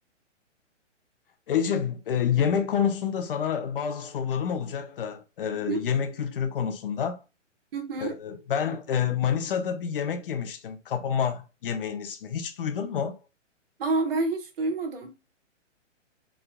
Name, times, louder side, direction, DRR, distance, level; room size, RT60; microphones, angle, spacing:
voice 1, 1.5-7.2 8.0-13.2, left 7 dB, 45° left, 0.9 m, -28 dB
voice 2, 7.7-8.1 13.8-15.1, right 3 dB, 50° right, 1.5 m, -28 dB
5.9 x 3.7 x 2.3 m
hypercardioid pair, 155°, 37 cm